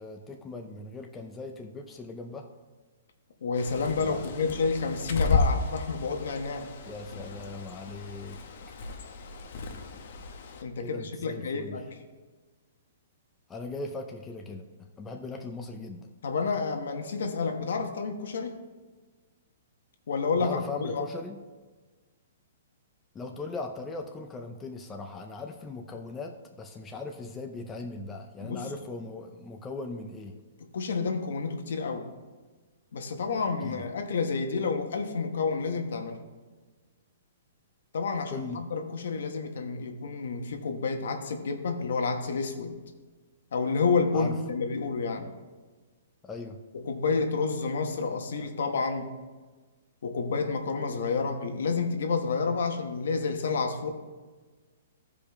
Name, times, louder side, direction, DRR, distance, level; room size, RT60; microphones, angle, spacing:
voice 1, 0.0-2.5 4.0-4.6 6.9-8.4 8.7-8.8 10.8-11.8 13.5-14.6 15.0-16.1 20.4-21.4 23.1-30.3 33.6-33.8 38.3-38.6 44.1-44.4 46.2-46.6, left 3 dB, 10° left, 3 dB, 0.3 m, -39 dB
voice 2, 3.4-6.7 10.6-12.0 16.2-18.6 20.1-21.1 28.4-28.7 30.7-32.1 32.9-36.2 37.9-42.7 43.5-45.3 46.7-49.1 50.0-53.9, left 4 dB, 65° left, 5 dB, 1.1 m, -29 dB
Bird, 3.5-10.6, left 4 dB, 45° left, 0.8 m, -33 dB
14.5 x 5.0 x 3.5 m, 1.3 s
hypercardioid pair, 175°, 0 cm